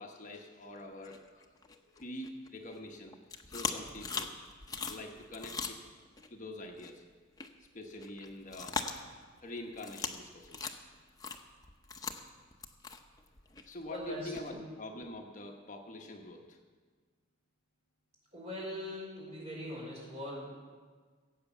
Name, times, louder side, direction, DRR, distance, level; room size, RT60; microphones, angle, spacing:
voice 1, 0.0-3.2 3.5-4.3 4.9-5.8 6.3-7.0 7.7-8.8 9.4-10.7 13.6-16.6, left 1 dB, 40° left, 2 dB, 1.1 m, -45 dB
sound 1, 1.0-2.8 3.1-6.3 6.7-6.9 7.4-7.5 7.8-9.4 9.7-10.2 10.4-14.5, left 4 dB, 20° left, 0.8 m, -40 dB
voice 2, 13.8-14.6 18.3-20.5, left 1 dB, 35° right, -4 dB, 4.9 m, -41 dB
16.5 x 8.3 x 7.1 m, 1.5 s
head